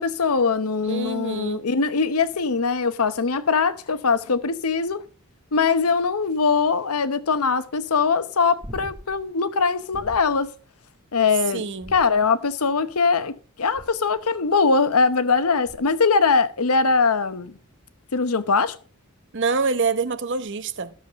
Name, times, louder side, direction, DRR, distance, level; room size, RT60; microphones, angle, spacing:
voice 1, 0.0-5.0 5.5-10.5 11.1-11.6 11.9-13.3 13.6-17.5 18.1-18.8, left 4 dB, 80° left, 0.8 m, -21 dB
voice 2, 0.9-1.6 11.5-11.9 19.3-20.9, right 4 dB, 55° right, 0.9 m, -26 dB
sound 1, 8.6-9.3 9.9-10.5 11.8-12.5 13.7-14.2 15.7-16.1 18.5-18.6, equal, 15° right, 0.9 m, -42 dB
12.5 x 7.2 x 5.1 m
head